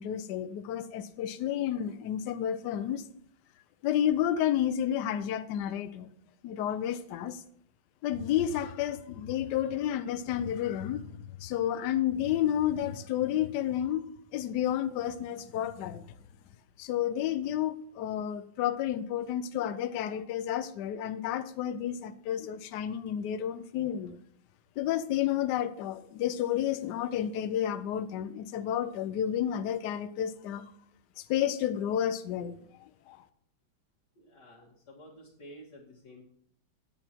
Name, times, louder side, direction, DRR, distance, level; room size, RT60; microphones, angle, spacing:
voice 1, 0.0-3.0 3.8-6.1 6.4-7.4 8.0-11.0 11.4-16.0 16.8-24.2 24.8-30.6 31.2-32.5 33.1-33.2, left 10 dB, 70° left, 1.1 m, -31 dB
voice 2, 34.2-36.2, equal, 50° left, 2.3 m, -51 dB
8.9 x 8.3 x 4.5 m
omnidirectional pair, 2.3 m